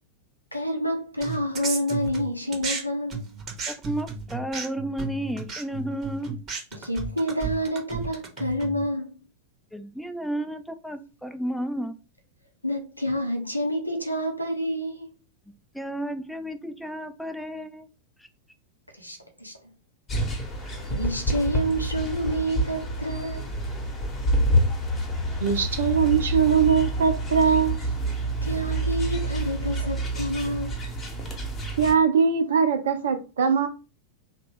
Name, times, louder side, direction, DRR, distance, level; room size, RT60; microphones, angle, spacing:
voice 1, 0.5-3.2 6.7-9.1 12.6-15.1 18.9-19.5 20.6-23.6 28.4-30.9, equal, 90° left, 0.5 m, -28 dB
sound 1, 1.2-2.8 3.1-8.8, right 5 dB, 30° right, 0.7 m, -33 dB
voice 2, 3.7-6.4 9.7-12.0 15.7-17.9 18.2-18.3, right 1 dB, ahead, 0.3 m, -32 dB
sound 2, 20.1-31.9, right 1 dB, 25° left, 0.8 m, -28 dB
voice 3, 25.4-27.8 31.8-33.7, right 6 dB, 65° right, 0.4 m, -21 dB
2.8 x 2.1 x 3.3 m
figure-of-eight pair, 90°, 0 cm